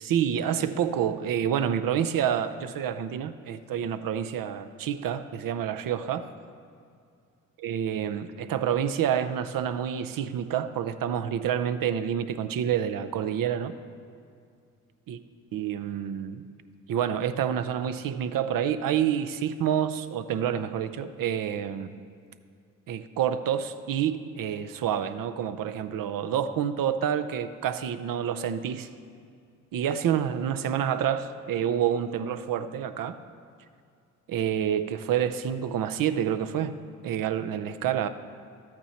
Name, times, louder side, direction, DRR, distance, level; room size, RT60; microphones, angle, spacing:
voice 1, 0.0-6.3 7.6-13.7 15.1-15.2 15.5-16.4 16.9-21.9 22.9-28.9 29.7-33.2 34.3-36.8 37.0-38.1, right 9 dB, 75° right, 11 dB, 0.6 m, -28 dB
12.5 x 8.8 x 4.2 m, 2.3 s
cardioid pair, 60°, 34 cm